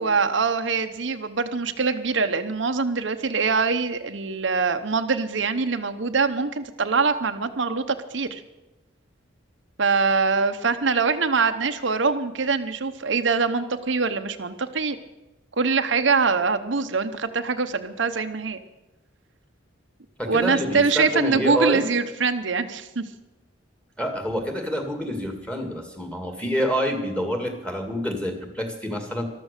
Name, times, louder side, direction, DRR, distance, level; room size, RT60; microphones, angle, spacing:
voice 1, 0.0-8.4 9.8-15.0 15.6-18.6 20.2-23.0, right 4 dB, 70° right, 7 dB, 0.9 m, -23 dB
voice 2, 20.2-21.8 24.0-29.2, equal, 5° left, 5 dB, 2.1 m, -27 dB
13.5 x 13.0 x 6.7 m, 1.0 s
head